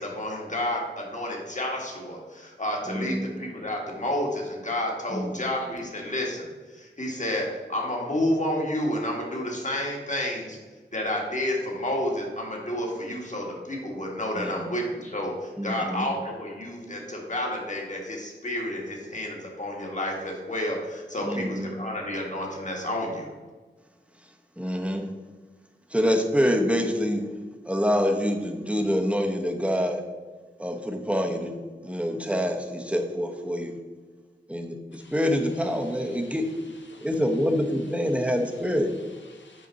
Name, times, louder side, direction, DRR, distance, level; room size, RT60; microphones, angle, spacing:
voice 1, 0.0-10.6 10.9-23.3, left 1 dB, 40° left, -1 dB, 1.7 m, -30 dB
voice 2, 2.9-3.3 5.1-5.5 14.4-14.7 15.6-16.1 21.2-21.7 24.6-25.1 25.9-27.2 27.7-30.0 30.6-31.5 31.8-33.7 34.5-36.5 37.0-38.9, equal, 5° right, 4 dB, 0.9 m, -26 dB
voice 3, 35.0-39.7, left 3 dB, 80° left, 1 dB, 1.2 m, -53 dB
7.7 x 5.1 x 4.0 m, 1.4 s
wide cardioid pair, 60°, 19 cm